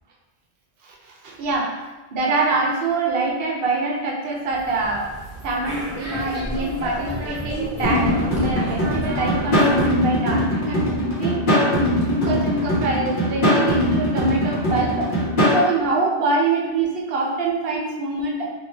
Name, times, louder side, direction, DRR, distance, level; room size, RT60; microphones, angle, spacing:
voice 1, 0.8-5.1 5.4-11.4 12.0-15.1 15.5-18.5, right 3 dB, 70° right, -2 dB, 0.7 m, -24 dB
sound 1, 4.5-9.9, right 1 dB, 20° right, 0.5 m, -32 dB
sound 2, 7.8-15.6, equal, 55° left, 1.0 m, -21 dB
2.8 x 2.4 x 3.1 m, 1.2 s
omnidirectional pair, 1.1 m